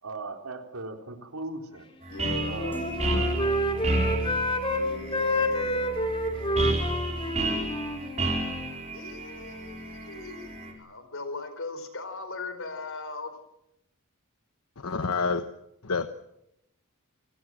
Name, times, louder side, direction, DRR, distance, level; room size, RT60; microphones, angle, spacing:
voice 1, 0.0-1.9 2.5-3.4 4.0-4.2, right 2 dB, 85° right, 4 dB, 3.7 m, -39 dB
sound 1, 2.0-10.7, right 2 dB, 30° right, 5.8 m, -31 dB
voice 2, 2.1-2.5 4.6-6.0 8.9-13.4, left 3 dB, 65° left, 9 dB, 4.5 m, -39 dB
Wind instrument woodwind instrument, 2.1-4.8 5.1-8.7, left 1 dB, 25° left, 3.0 m, -29 dB
sound 2, 2.7-9.0 9.3-9.7, right 6 dB, 10° left, 6.6 m, -46 dB
voice 3, 14.8-15.4 15.8-16.1, left 4 dB, 85° left, 9 dB, 1.1 m, -27 dB
29.0 x 18.0 x 7.7 m, 0.84 s
head